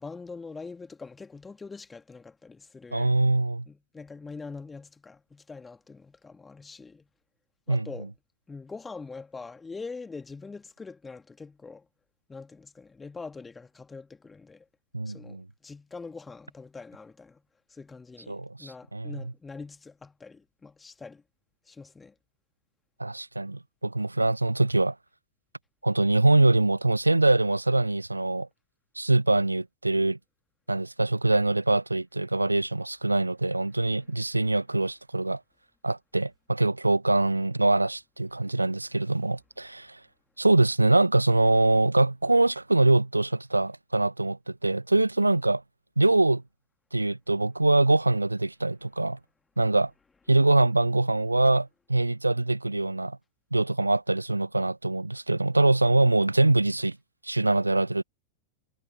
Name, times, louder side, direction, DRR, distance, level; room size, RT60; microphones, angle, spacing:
voice 1, 0.0-3.2 3.7-7.1 7.7-8.1 8.5-11.9 12.3-14.7 15.1-17.4 17.7-21.2 21.7-22.1, left 4 dB, 15° left, 2.5 m, -43 dB
voice 2, 2.9-3.7 7.7-7.9 14.9-15.4 18.3-19.2 23.0-24.9 25.8-28.5 28.9-30.2 30.7-35.4 35.8-40.0 40.4-45.6 46.0-46.4 46.9-49.2 49.6-49.9 50.3-53.2 53.5-57.0 57.2-58.0, right 2 dB, 85° right, 1.4 m, -24 dB
figure-of-eight pair, 90°, 0 cm